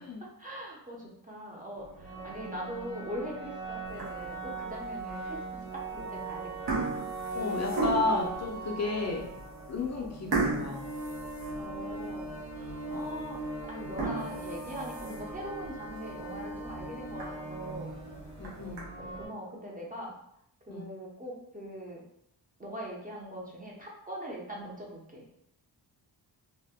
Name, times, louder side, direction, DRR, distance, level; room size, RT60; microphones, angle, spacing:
voice 1, 0.2-6.8 10.5-10.6 11.6-13.4 13.7-17.9 19.0-20.1 20.7-22.0 22.6-25.3, equal, 20° right, -3 dB, 0.6 m, -42 dB
sound 1, 1.7-19.3, right 2 dB, 40° right, 1.1 m, -39 dB
sound 2, 3.9-4.4 5.0-5.1 5.9-6.2 6.4-8.3 8.9-9.0 9.4-9.5 10.3-12.1 12.5-12.6 13.1-13.2 13.8-15.4 15.9-16.0 16.4-16.5 16.8-16.9 17.2-17.3 18.2-18.8, right 3 dB, 70° right, 0.9 m, -34 dB
voice 2, 7.3-9.2 9.7-10.9 12.9-13.0 18.4-18.9 20.7-20.9, left 2 dB, 40° left, -1 dB, 0.5 m, -32 dB
2.7 x 2.1 x 3.4 m, 0.76 s
wide cardioid pair, 100°, 43 cm